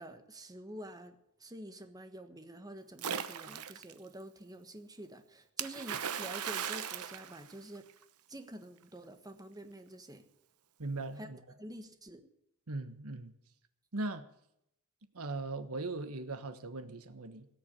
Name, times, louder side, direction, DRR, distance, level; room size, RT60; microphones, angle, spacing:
voice 1, 0.0-7.8 8.3-10.2 11.2-11.3 11.6-12.2, right 1 dB, 15° right, 8 dB, 1.4 m, -48 dB
Splash splatter, 3.0-3.9 5.6-8.0, right 8 dB, 90° right, 1.0 m, -38 dB
voice 2, 10.8-11.4 12.7-13.3 13.9-14.3 15.1-17.5, right 2 dB, 75° right, 10 dB, 1.3 m, -39 dB
17.5 x 7.0 x 8.3 m, 0.78 s
head